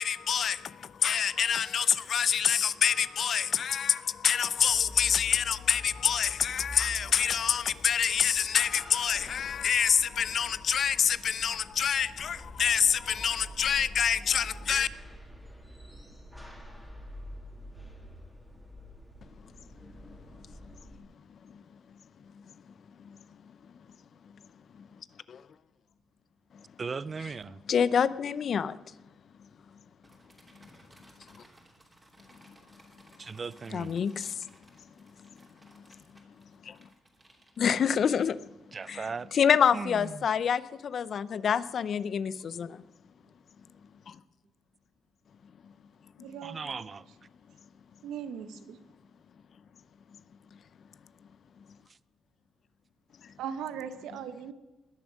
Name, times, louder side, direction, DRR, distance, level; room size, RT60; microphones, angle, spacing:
voice 1, 0.0-14.9 19.4-23.5 24.2-25.0 25.3-25.4 26.5-26.6 27.2-27.3 27.7-29.0 30.6-30.7 31.3-31.4 32.5-32.6 32.9-33.0 33.7-36.3 36.6-36.9 37.6-38.6 38.9-42.9 44.1-44.2 45.6-45.7 46.3-46.4 50.5-50.6 51.6-51.7 53.2-53.3, left 7 dB, 55° left, 0.5 m, -28 dB
sound 1, 4.6-21.0, equal, ahead, 2.8 m, -46 dB
voice 2, 26.8-27.6 33.2-34.0 38.7-39.3 39.7-40.2 46.4-47.1, right 5 dB, 35° right, 0.4 m, -37 dB
sound 2, 30.0-38.8, right 1 dB, 15° right, 2.9 m, -60 dB
voice 3, 46.2-46.8 48.0-48.8 53.4-54.5, right 8 dB, 85° right, 1.0 m, -39 dB
20.5 x 7.2 x 6.3 m
cardioid pair, 90°, 0 cm